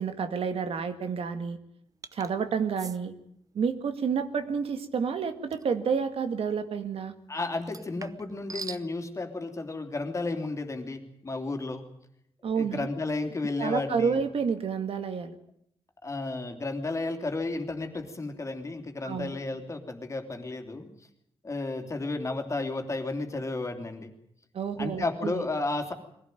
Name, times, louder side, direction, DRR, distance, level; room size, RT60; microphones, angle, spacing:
voice 1, 0.0-1.6 2.1-3.1 3.5-7.1 12.4-12.9 13.6-15.3 19.0-19.4 24.5-25.5, right 6 dB, 85° right, 9 dB, 1.9 m, -29 dB
sound 1, 2.0-2.3 2.8-3.0 5.5-5.7 7.6-8.9, right 4 dB, 35° right, 0.8 m, -41 dB
voice 2, 7.3-11.9 12.5-14.2 16.0-20.9 21.4-24.1 24.8-25.9, left 2 dB, 30° left, 6 dB, 3.1 m, -33 dB
22.5 x 16.5 x 9.2 m, 0.72 s
wide cardioid pair, 115°, 10 cm